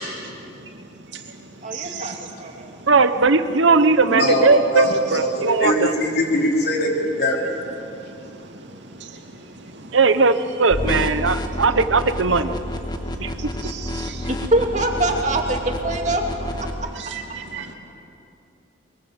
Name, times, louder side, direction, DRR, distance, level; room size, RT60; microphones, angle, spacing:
voice 1, 0.0-2.2 2.8-2.9 7.8-10.0 13.0-14.3 17.0-17.7, right 5 dB, 70° right, 3 dB, 2.4 m, -38 dB
voice 2, 1.6-2.1 2.4-2.7 14.3-16.2 16.6-16.7, right 2 dB, 35° right, 2 dB, 2.4 m, -23 dB
voice 3, 2.9-5.9 9.9-12.6 13.2-13.7, right 4 dB, 85° right, 10 dB, 0.9 m, -18 dB
voice 4, 4.1-4.9 5.2-7.7, left 1 dB, 55° left, -1 dB, 4.0 m, -21 dB
sound 1, 10.7-16.7, left 1 dB, 20° left, 1.4 m, -29 dB
23.0 x 22.5 x 8.0 m, 2.7 s
head